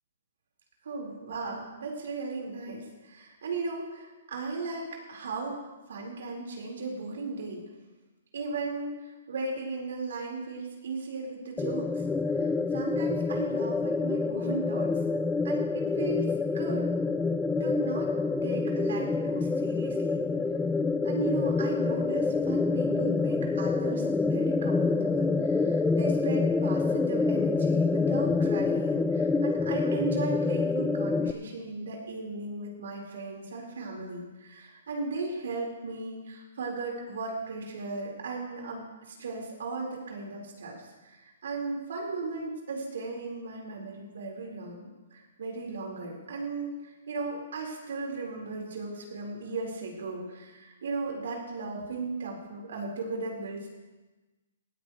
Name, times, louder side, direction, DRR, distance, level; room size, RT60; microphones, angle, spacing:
voice 1, 0.8-5.6 5.9-7.6 8.3-12.0 12.3-14.9 15.4-16.9 17.6-18.1 18.4-20.2 21.0-53.7, right 3 dB, 75° right, 0 dB, 4.6 m, -36 dB
sound 1, 11.6-31.3, left 4 dB, 5° left, 0.4 m, -27 dB
18.5 x 14.5 x 3.2 m, 1.2 s
hypercardioid pair, 155°, 0 cm